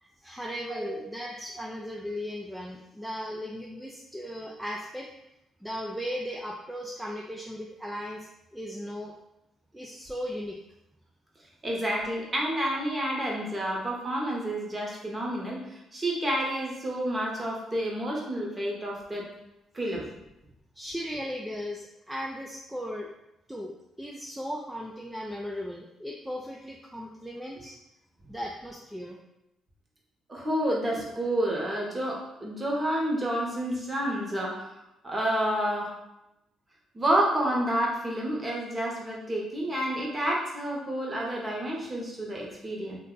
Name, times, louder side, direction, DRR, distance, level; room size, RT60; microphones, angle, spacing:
voice 1, 0.0-5.1 5.6-9.1 9.7-10.6 20.8-23.1 23.5-27.8 28.3-29.2, equal, 5° right, -2 dB, 0.3 m, -37 dB
voice 2, 11.6-19.3 19.7-20.1 30.3-34.7 35.0-35.9 36.9-43.0, right 1 dB, 25° right, -2 dB, 0.9 m, -29 dB
2.6 x 2.2 x 3.7 m, 0.88 s
cardioid pair, 90°, 0 cm